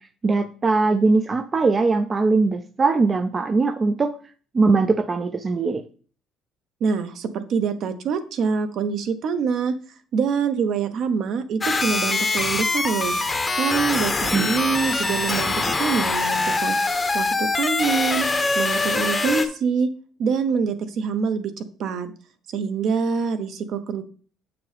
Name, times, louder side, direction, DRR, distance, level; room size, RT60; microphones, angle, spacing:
voice 1, 0.2-4.1 4.5-5.8 14.3-14.4, right 3 dB, 25° right, 9 dB, 0.4 m, -20 dB
voice 2, 6.8-9.8 10.1-13.2 13.5-16.8 17.1-18.3 18.5-19.9 20.2-22.1 22.5-24.0, right 6 dB, 60° right, 9 dB, 0.8 m, -25 dB
sound 1, 11.6-19.5, left 3 dB, 20° left, 0.7 m, -23 dB
7.4 x 5.9 x 3.4 m, 0.41 s
cardioid pair, 130°, 0 cm